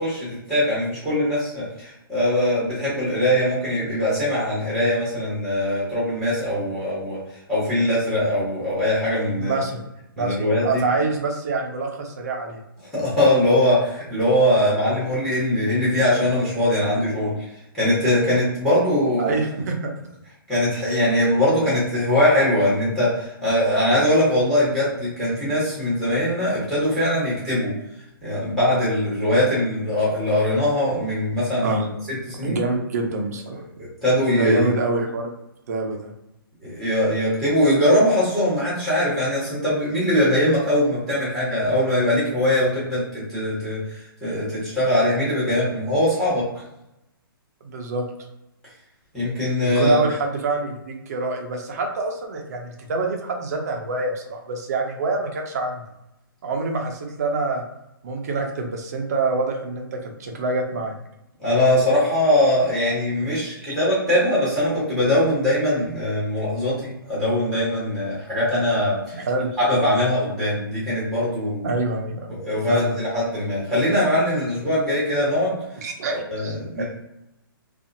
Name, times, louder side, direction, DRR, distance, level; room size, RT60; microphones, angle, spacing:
voice 1, 0.0-7.2 7.5-9.6 10.2-10.8 12.9-17.3 17.7-19.3 20.5-27.7 28.2-31.7 32.2-32.6 33.8-34.7 36.6-46.5 49.1-50.0 61.4-69.2 69.6-71.7 72.4-75.6 76.1-76.8, left 1 dB, ahead, -8 dB, 1.3 m, -21 dB
voice 2, 9.4-9.8 10.2-12.6 19.2-19.9 31.6-32.0 32.4-33.6 34.3-35.3 35.7-36.1 47.6-48.0 49.6-55.8 56.4-57.6 58.0-61.0 63.2-63.8 69.1-69.5 71.6-72.3 72.7-72.9 75.8-76.8, right 3 dB, 45° right, 2 dB, 0.6 m, -26 dB
2.7 x 2.4 x 2.6 m, 0.88 s
hypercardioid pair, 160°, 12 cm